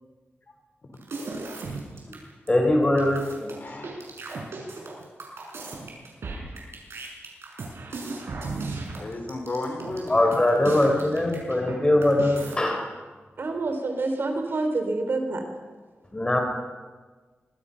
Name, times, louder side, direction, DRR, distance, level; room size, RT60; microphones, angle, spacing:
sound 1, 1.0-2.2 2.5-2.6 2.8-11.8 12.0-12.6, right 3 dB, 80° right, 6.6 m, -36 dB
voice 1, 2.5-3.5 10.1-12.9 16.1-16.4, left 1 dB, 20° left, 2 dB, 5.3 m, -22 dB
voice 2, 3.6-3.9 9.0-10.9, left 2 dB, 45° left, 3 dB, 4.7 m, -34 dB
voice 3, 13.4-15.4, right 3 dB, 60° right, 5 dB, 3.7 m, -27 dB
25.5 x 22.5 x 5.9 m, 1.4 s
wide cardioid pair, 130°, 4 cm